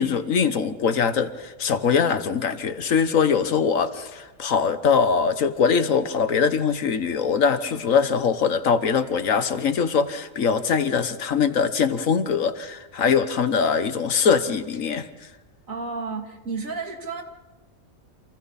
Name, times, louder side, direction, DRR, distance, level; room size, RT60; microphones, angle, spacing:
voice 1, 0.0-15.1, left 6 dB, 80° left, 11 dB, 1.6 m, -22 dB
voice 2, 15.7-17.2, right 4 dB, 80° right, 3 dB, 2.9 m, -31 dB
30.0 x 27.0 x 4.2 m, 1.2 s
omnidirectional pair, 1.4 m